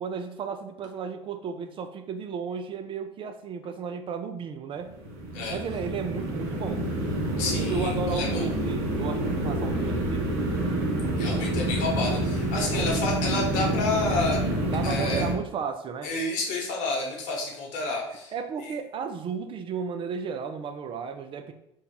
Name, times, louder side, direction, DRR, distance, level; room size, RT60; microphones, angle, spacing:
voice 1, 0.0-4.9 5.5-6.9 7.6-10.3 12.7-13.1 14.7-16.1 18.3-21.5, right 6 dB, 35° right, 8 dB, 0.3 m, -34 dB
sound 1, 4.8-15.3, right 1 dB, 65° right, 1.0 m, -28 dB
voice 2, 7.4-8.5 11.2-14.4 14.8-15.2 16.0-18.3 18.6-18.7, left 3 dB, 60° left, 0 dB, 1.0 m, -30 dB
2.7 x 2.2 x 3.8 m, 0.80 s
hypercardioid pair, 75°, 14 cm